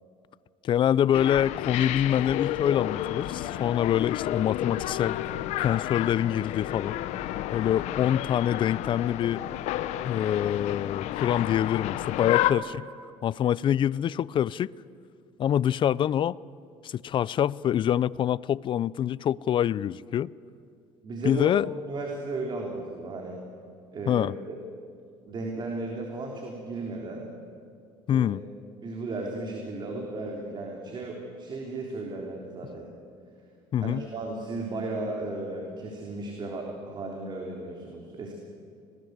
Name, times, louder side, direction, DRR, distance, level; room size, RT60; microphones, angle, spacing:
voice 1, 0.6-5.2 5.6-7.0 7.5-9.4 10.0-12.9 13.2-14.7 15.4-16.4 16.8-20.3 21.2-21.7 24.1-24.3 28.1-28.4 33.7-34.0, left 10 dB, 45° left, 21 dB, 0.5 m, -25 dB
sound 1, 1.1-12.5, left 13 dB, 70° left, 0.9 m, -31 dB
voice 2, 21.0-21.5 21.9-23.4 23.9-24.6 25.3-27.3 28.1-28.3 28.8-32.8 33.8-38.3, right 2 dB, 40° right, 0 dB, 3.6 m, -35 dB
25.5 x 19.0 x 8.1 m, 2.4 s
cardioid pair, 100°, 12 cm